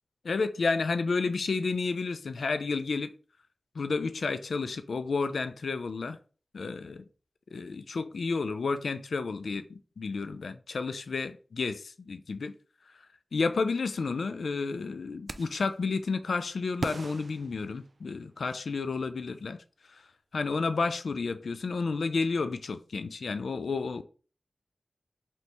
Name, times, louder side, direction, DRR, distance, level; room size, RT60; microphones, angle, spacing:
voice 1, 0.2-3.1 3.8-6.2 6.5-7.0 7.5-12.5 13.3-19.6 19.9-20.0 20.3-24.0, left 4 dB, 85° left, 0.4 m, -31 dB
sound 1, 15.3-15.7 16.8-18.3, right 3 dB, 60° right, 0.4 m, -38 dB
3.3 x 3.0 x 4.0 m
wide cardioid pair, 80°, 0 cm